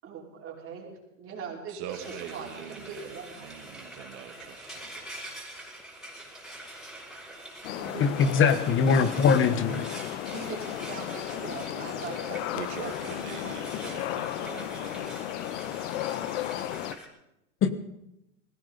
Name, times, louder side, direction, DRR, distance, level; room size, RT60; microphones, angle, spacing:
voice 1, 0.0-3.5 7.8-8.0 10.3-12.5 12.8-13.1 13.4-13.7, right 6 dB, 35° right, -2 dB, 5.0 m, -41 dB
voice 2, 1.7-5.1 12.5-15.4, right 9 dB, 60° right, 5 dB, 2.4 m, -43 dB
Frying (food), 1.9-17.1, right 1 dB, ahead, 5.7 m, -44 dB
sound 1, 7.6-16.9, left 13 dB, 60° left, 1.0 m, -34 dB
voice 3, 8.0-9.9 17.6-17.7, left 6 dB, 30° left, 11 dB, 1.4 m, -22 dB
20.5 x 17.0 x 4.0 m, 0.85 s
hypercardioid pair, 110°, 40 cm